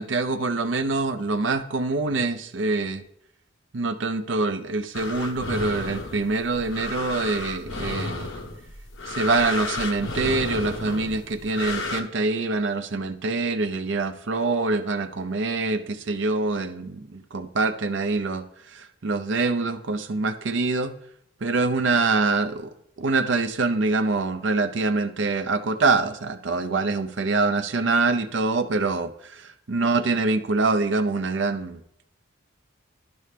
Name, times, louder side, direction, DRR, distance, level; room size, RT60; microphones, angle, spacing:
voice 1, 0.0-3.0 3.7-8.3 9.1-18.4 19.0-20.9 21.4-22.7 23.0-29.1 29.7-31.8, right 3 dB, 60° right, 10 dB, 0.6 m, -25 dB
sound 1, 4.9-12.0, left 3 dB, 65° left, 0.9 m, -32 dB
11.0 x 5.4 x 3.3 m, 0.77 s
head